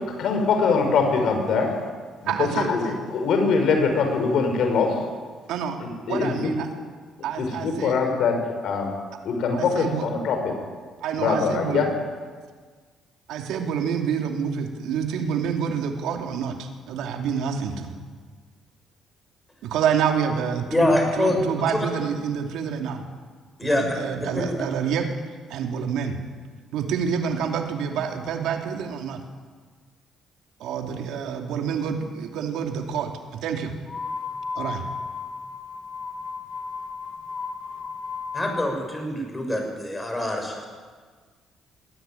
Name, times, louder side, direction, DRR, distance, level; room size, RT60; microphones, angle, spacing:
voice 1, 0.2-1.8 2.2-4.9 5.8-6.5 7.4-8.4 8.6-8.9 9.2-10.5 11.2-11.9, left 5 dB, 70° left, 4 dB, 5.8 m, -23 dB
voice 2, 2.2-2.7 5.5-5.8 6.1-6.7 7.2-8.2 9.5-10.1 11.0-11.9 13.3-17.9 19.6-20.9 21.2-23.0 23.6-25.1 25.5-26.2 26.7-29.2 30.6-33.7 34.5-34.8, right 7 dB, 80° right, 4 dB, 2.9 m, -27 dB
voice 3, 20.7-21.4 23.6-23.8 24.2-24.4 38.3-40.7, left 1 dB, 10° left, 3 dB, 6.7 m, -24 dB
sound 1, 33.8-38.8, left 4 dB, 35° left, 2.0 m, -34 dB
21.5 x 17.0 x 9.2 m, 1.5 s
cardioid pair, 100°, 0 cm